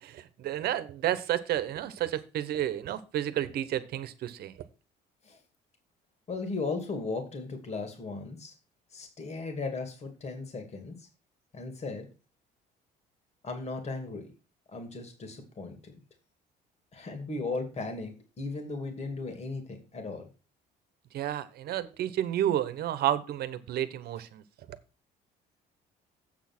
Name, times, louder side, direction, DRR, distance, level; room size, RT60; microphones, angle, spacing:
voice 1, 0.0-4.5 21.1-24.4, right 11 dB, 70° right, 1.1 m, -31 dB
voice 2, 6.3-8.5 8.9-11.1 11.5-12.1 13.4-14.3 14.7-15.9 16.9-20.3, left 3 dB, 40° left, 2.4 m, -36 dB
8.0 x 6.6 x 6.1 m
cardioid pair, 110°, 17 cm